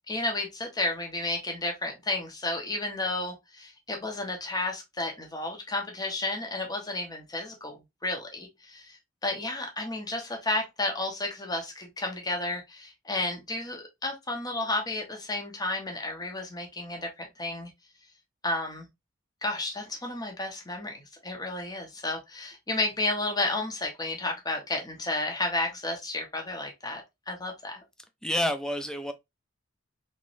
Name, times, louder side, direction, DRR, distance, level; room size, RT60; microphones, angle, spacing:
voice 1, 0.1-17.7 18.4-18.9 19.4-27.8, left 2 dB, 20° left, 1.0 m, -32 dB
voice 2, 28.2-29.1, equal, 5° left, 0.4 m, -28 dB
3.5 x 3.1 x 2.6 m
head